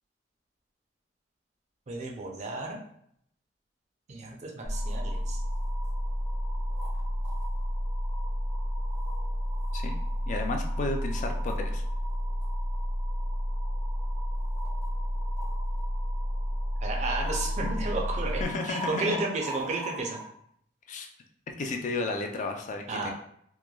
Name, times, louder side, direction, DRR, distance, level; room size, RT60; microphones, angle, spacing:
voice 1, 1.9-2.8 4.1-5.4 16.8-18.4 18.7-20.2 22.9-23.1, right 3 dB, 40° right, 0 dB, 0.5 m, -32 dB
sound 1, 4.6-18.5, equal, 70° left, 1.0 m, -31 dB
sound 2, 4.7-20.2, right 2 dB, 80° right, 0.9 m, -43 dB
voice 2, 10.2-11.8 18.4-19.2 20.9-21.1 21.6-23.1, left 3 dB, 40° left, 3 dB, 0.3 m, -33 dB
3.0 x 2.2 x 2.2 m, 0.69 s
head